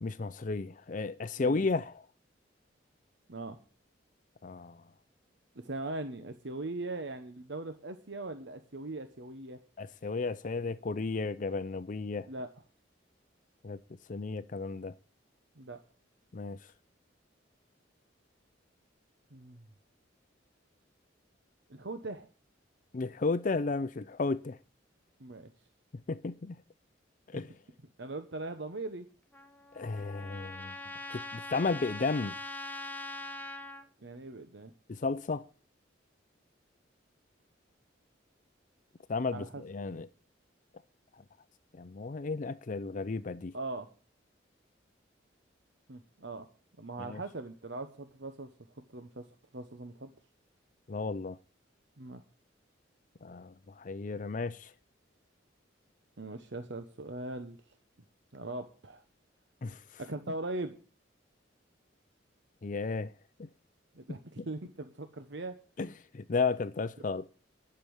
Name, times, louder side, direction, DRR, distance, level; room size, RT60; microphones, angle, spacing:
voice 1, 0.0-2.0 4.4-4.8 9.8-12.3 13.6-13.8 14.1-14.9 16.3-16.6 22.9-24.6 26.1-26.5 27.3-27.5 29.7-30.7 31.1-32.4 34.9-35.4 39.1-40.1 41.8-43.5 47.1-47.2 50.9-51.4 53.2-54.7 59.6-59.8 62.6-63.1 63.4-63.5 65.8-65.9 66.1-67.3, left 4 dB, 45° left, 0.5 m, -33 dB
voice 2, 5.5-9.6 12.3-12.5 15.6-15.8 19.3-19.6 21.7-22.3 25.2-25.5 28.0-29.1 34.0-34.7 39.3-39.6 43.5-43.9 45.9-46.5 46.8-48.5 48.9-49.3 49.5-50.1 52.0-52.2 56.2-57.6 58.3-59.0 60.0-60.8 63.9-65.6, right 2 dB, 70° right, 1.0 m, -40 dB
Trumpet, 29.3-33.9, left 2 dB, 10° left, 1.1 m, -42 dB
11.5 x 6.9 x 8.6 m
head